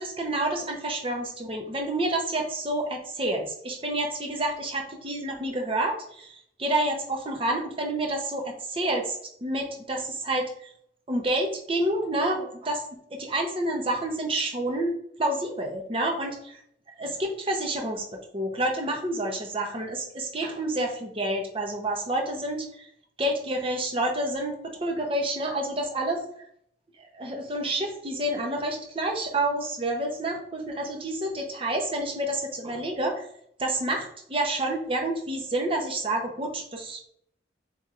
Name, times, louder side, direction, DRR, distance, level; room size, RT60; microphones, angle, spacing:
voice 1, 0.0-10.7 11.1-12.8 13.1-16.6 17.0-22.9 23.2-26.2 27.0-33.3 33.6-37.0, right 1 dB, 30° right, 2 dB, 0.8 m, -29 dB
7.0 x 3.0 x 2.5 m, 0.68 s
head